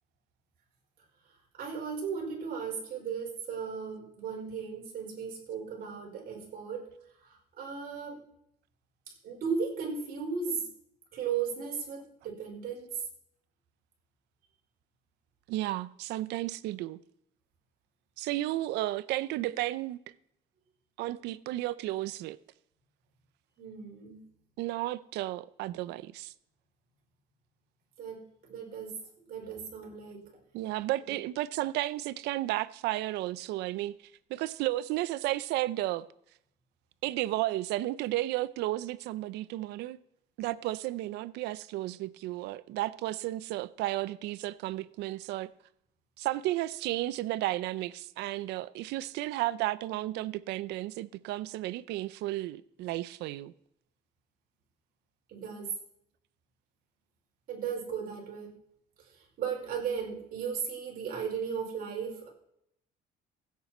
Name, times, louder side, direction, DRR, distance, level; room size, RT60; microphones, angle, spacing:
voice 1, 1.5-6.8 7.2-8.2 9.2-10.7 11.1-12.9 23.6-24.2 28.0-28.9 29.3-30.2 55.3-55.7 57.5-58.5 59.4-62.3, right 6 dB, 60° right, 5.0 m, -36 dB
voice 2, 15.5-17.0 18.2-20.0 21.0-22.4 24.6-26.3 30.5-34.0 34.3-36.1 37.0-40.0 40.4-45.5 46.2-53.5, right 16 dB, 85° right, 0.6 m, -33 dB
16.0 x 8.3 x 4.3 m
cardioid pair, 110°, 17 cm